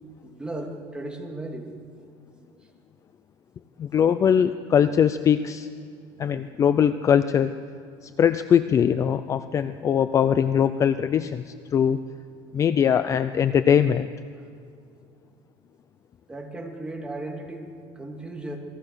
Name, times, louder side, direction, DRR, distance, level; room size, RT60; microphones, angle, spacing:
voice 1, 0.2-1.7 2.4-2.5 16.3-18.6, right 2 dB, 10° right, 0 dB, 2.8 m, -36 dB
voice 2, 3.8-5.7 6.2-7.5 8.0-12.0 12.5-14.1, left 8 dB, 25° left, 12 dB, 0.5 m, -21 dB
28.0 x 20.5 x 6.4 m, 2.3 s
cardioid pair, 155°, 11 cm